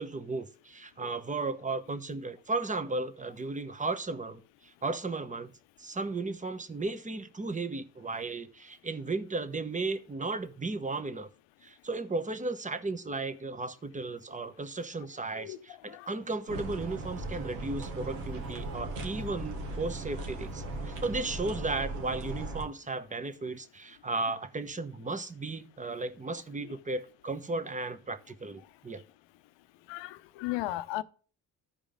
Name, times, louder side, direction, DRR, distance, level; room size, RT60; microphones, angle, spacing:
voice 1, 0.0-5.5 5.8-11.3 11.6-29.0, right 3 dB, 15° right, 1.0 m, -35 dB
voice 2, 15.4-16.1 29.9-31.0, left 16 dB, 65° left, 0.7 m, -36 dB
sound 1, 16.5-22.7, right 2 dB, 70° right, 1.5 m, -38 dB
13.0 x 5.0 x 3.7 m
figure-of-eight pair, 45°, 49 cm